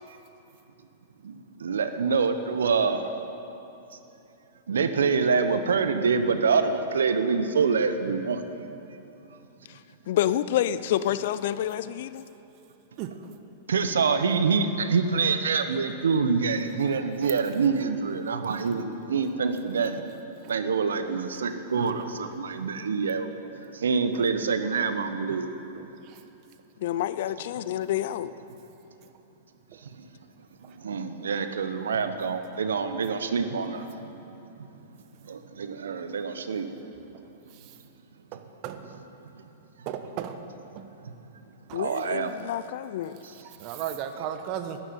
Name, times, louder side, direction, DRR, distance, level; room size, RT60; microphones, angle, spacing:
voice 1, 1.2-3.0 4.7-8.4 13.7-20.0 20.5-23.3 23.7-25.5 30.8-33.9 35.3-36.7 41.7-42.3 43.2-43.3, right 5 dB, 75° right, 9 dB, 1.1 m, -26 dB
voice 2, 10.1-12.2 26.8-28.3 41.7-43.2, left 11 dB, 60° left, 15 dB, 0.6 m, -28 dB
voice 3, 38.3-39.0 39.9-40.4 40.8-40.9 41.7-41.8 43.6-44.8, right 9 dB, 45° right, 8 dB, 1.2 m, -35 dB
12.5 x 10.5 x 9.5 m, 2.9 s
hypercardioid pair, 105°, 0 cm